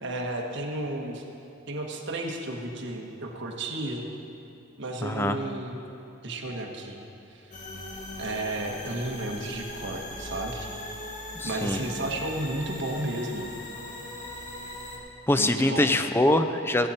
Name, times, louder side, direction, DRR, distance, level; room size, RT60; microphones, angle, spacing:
voice 1, 0.0-1.2 1.7-4.1 4.8-5.8 6.2-7.0 8.2-10.7 11.4-13.5 15.3-15.9, right 1 dB, 60° right, 0 dB, 1.4 m, -33 dB
voice 2, 5.0-5.4 11.4-11.8 15.3-16.9, left 1 dB, 10° left, 8 dB, 0.5 m, -24 dB
sound 1, 7.5-15.0, left 1 dB, 40° left, 1.6 m, -39 dB
16.5 x 8.4 x 4.3 m, 2.8 s
head